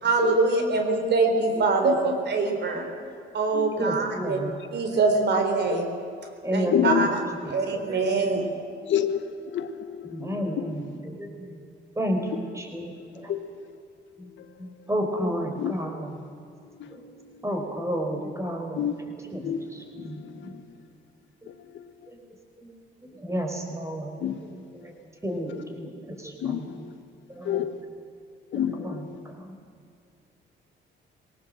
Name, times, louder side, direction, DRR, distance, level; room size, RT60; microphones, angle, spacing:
voice 1, 0.0-2.8 3.3-4.4 4.7-5.9 6.5-7.2 7.5-8.4, right 4 dB, 60° right, 4 dB, 3.7 m, -24 dB
voice 2, 1.6-2.2 3.5-3.7 5.7-5.8 6.6-7.1 8.8-9.2 9.5-10.8 13.3-13.4 15.6-15.7 16.8-17.0 18.8-18.9 19.4-19.6 20.0-20.1 20.4-20.5 21.7-21.8 24.2-24.4 26.4-26.9 27.4-27.7 28.5-29.0, left 10 dB, 70° left, 11 dB, 1.2 m, -28 dB
voice 3, 3.8-4.5 6.4-8.4 10.0-11.5 12.0-12.3 12.5-13.3 14.2-14.3 14.6-16.2 16.9-17.0 17.4-18.9 19.3-20.5 22.6-22.7 23.2-24.9 25.2-26.7 27.3-27.6 28.8-29.0 29.4-29.5, equal, 15° right, 3 dB, 4.4 m, -32 dB
20.5 x 18.0 x 7.7 m, 2.6 s
cardioid pair, 90°, 20 cm